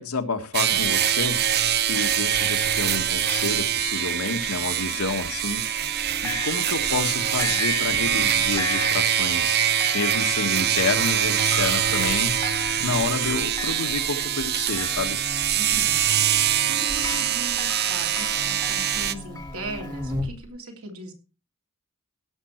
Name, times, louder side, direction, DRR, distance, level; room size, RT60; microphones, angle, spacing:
voice 1, 0.0-1.4 1.9-5.9 6.2-9.6 9.9-15.2, left 3 dB, 75° left, 7 dB, 1.5 m, -29 dB
sound 1, 0.5-19.1, right 10 dB, 50° right, 0.6 m, -24 dB
Buzz, 0.7-20.5, left 1 dB, 20° right, 1.6 m, -41 dB
voice 2, 1.9-2.3 15.5-16.0 16.7-21.1, right 1 dB, 70° right, 2 dB, 3.1 m, -39 dB
sound 2, 4.1-6.0 6.2-20.1, left 4 dB, 15° left, 1.0 m, -38 dB
17.0 x 6.8 x 4.5 m, 0.33 s
head